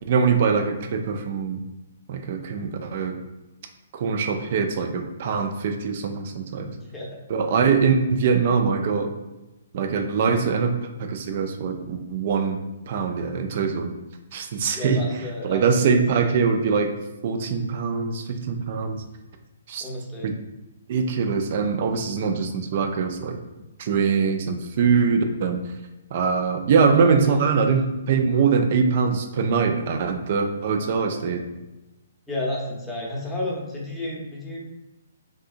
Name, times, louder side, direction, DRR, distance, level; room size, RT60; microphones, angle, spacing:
voice 1, 0.1-1.6 2.1-3.1 3.9-6.7 7.3-9.1 9.7-10.7 11.1-12.6 12.9-13.9 14.3-15.0 15.4-16.9 17.2-19.0 19.7-19.8 20.2-20.3 20.9-23.4 23.8-25.6 26.1-27.8 28.1-31.4, right 5 dB, 50° right, 5 dB, 0.4 m, -22 dB
voice 2, 6.7-7.2 14.7-16.4 19.8-20.3 27.0-27.8 31.1-31.4 32.3-34.6, left 1 dB, 5° left, -5 dB, 0.8 m, -32 dB
3.5 x 2.7 x 2.5 m, 1.0 s
hypercardioid pair, 135°, 0 cm